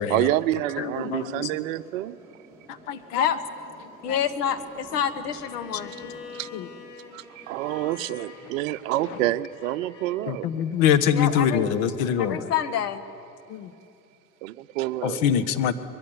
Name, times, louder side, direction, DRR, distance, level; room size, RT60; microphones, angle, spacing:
voice 1, 0.1-2.2 6.4-6.5 7.1-10.5 14.4-15.2, right 15 dB, 50° right, 13 dB, 0.8 m, -28 dB
voice 2, 0.8-1.5 2.7-3.3 4.1-4.2 6.0-6.1 6.5-6.7 10.3-12.4 13.5-13.7 15.0-15.7, left 8 dB, 50° left, 11 dB, 1.6 m, -24 dB
sound 1, 0.9-7.5, equal, 5° right, 4.9 m, -50 dB
voice 3, 4.0-5.9 11.1-11.7 12.2-13.0 15.1-15.2, left 9 dB, 65° left, 9 dB, 1.8 m, -27 dB
Bowed string instrument, 5.3-10.2, left 5 dB, 85° left, 2.8 m, -45 dB
24.0 x 22.0 x 9.8 m, 2.7 s
figure-of-eight pair, 85°, 50 cm